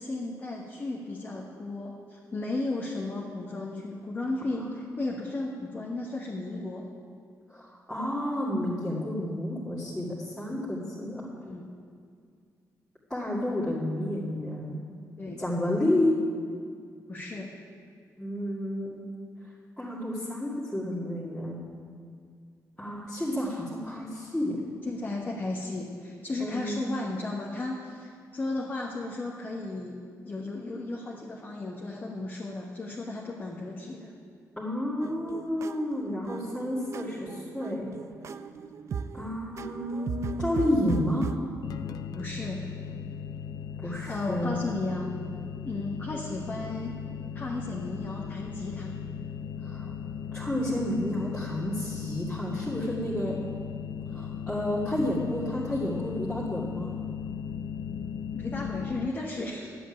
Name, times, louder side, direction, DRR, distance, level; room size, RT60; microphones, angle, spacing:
voice 1, 0.0-6.8 11.4-11.6 15.2-15.4 17.1-17.5 24.8-30.0 30.2-34.1 42.1-42.6 43.8-45.1 45.6-47.0 47.3-48.9 58.3-59.8, left 2 dB, 30° left, -3 dB, 1.3 m, -34 dB
voice 2, 7.5-11.3 13.1-14.8 15.4-16.1 18.2-19.0 19.8-21.6 22.8-24.6 26.4-26.8 34.6-37.9 39.1-41.3 43.8-44.6 49.6-49.9 50.3-53.4 54.1-56.9, left 1 dB, 10° left, -8 dB, 2.2 m, -30 dB
sound 1, 35.0-41.4, right 6 dB, 50° right, 0.5 m, -37 dB
sound 2, 41.6-59.1, left 7 dB, 80° left, 0.5 m, -37 dB
11.5 x 8.0 x 9.8 m, 2.2 s
wide cardioid pair, 160°, 6 cm